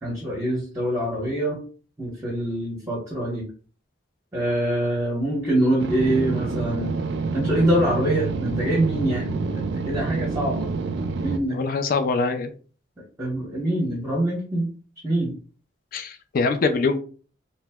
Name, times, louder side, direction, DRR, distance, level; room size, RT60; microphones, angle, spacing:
voice 1, 0.0-1.6 2.0-3.5 4.3-6.9 7.3-10.7 11.2-11.7 13.2-14.7 15.0-15.3, right 1 dB, 15° right, -5 dB, 0.7 m, -24 dB
sound 1, 5.8-11.4, right 4 dB, 65° right, 0.3 m, -28 dB
voice 2, 11.5-12.5 15.9-17.0, left 4 dB, 45° left, 7 dB, 0.3 m, -23 dB
2.8 x 2.0 x 3.4 m, 0.40 s
head